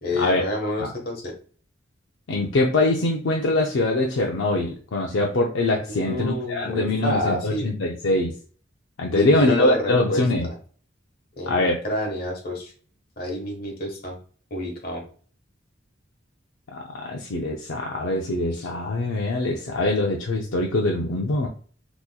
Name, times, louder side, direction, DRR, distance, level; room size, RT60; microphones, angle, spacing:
voice 1, 0.0-1.2 5.9-7.7 9.1-10.2 11.4-12.7 13.2-14.2 14.5-15.0 18.5-18.7, left 1 dB, 50° left, 1 dB, 1.2 m, -28 dB
voice 2, 2.3-8.3 9.0-10.5 11.5-11.8 16.7-21.5, left 2 dB, 75° left, 0 dB, 0.5 m, -23 dB
3.7 x 3.0 x 2.2 m, 0.43 s
head